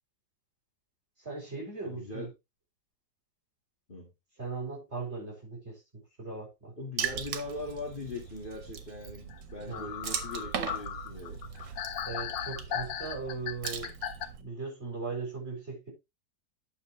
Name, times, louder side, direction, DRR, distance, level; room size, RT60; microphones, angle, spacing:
voice 1, 1.2-2.3 4.4-6.7 9.7-9.9 12.0-13.9 14.4-15.9, right 4 dB, 35° right, 6.5 m, -38 dB
voice 2, 1.8-2.3 3.9-4.1 6.8-11.4, left 2 dB, 30° left, 2.0 m, -40 dB
Water / Splash splatter, 7.0-14.4, right 8 dB, 90° right, 1.8 m, -39 dB
sound 1, 9.3-9.4 9.7-14.3, left 9 dB, 85° left, 1.6 m, -37 dB
9.9 x 6.5 x 3.2 m
omnidirectional pair, 2.0 m